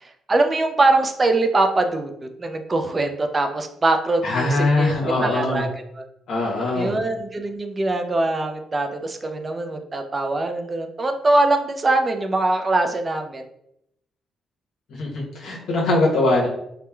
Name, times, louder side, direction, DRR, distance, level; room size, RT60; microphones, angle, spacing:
voice 1, 0.0-2.1 2.4-5.7 6.7-13.4, right 2 dB, 30° right, 5 dB, 0.3 m, -22 dB
voice 2, 4.2-5.6 6.3-7.0 15.0-16.5, left 2 dB, 70° left, -2 dB, 0.8 m, -21 dB
2.9 x 2.1 x 2.2 m, 0.77 s
cardioid pair, 90°, 0 cm